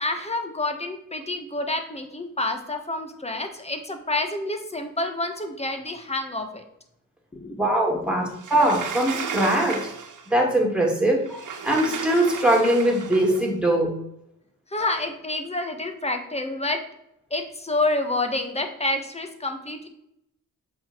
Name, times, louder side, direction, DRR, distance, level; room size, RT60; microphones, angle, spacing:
voice 1, 0.0-6.6 7.3-7.6 7.9-8.2 14.7-16.8 17.3-19.9, left 2 dB, 20° left, 6 dB, 1.6 m, -28 dB
voice 2, 7.6-8.2 8.5-9.8 10.3-13.9, right 1 dB, 5° right, 0 dB, 3.1 m, -21 dB
Sliding door, 8.4-10.3 11.3-13.4, right 6 dB, 65° right, 1.5 m, -33 dB
7.6 x 6.2 x 4.7 m, 0.76 s
cardioid pair, 80°, 33 cm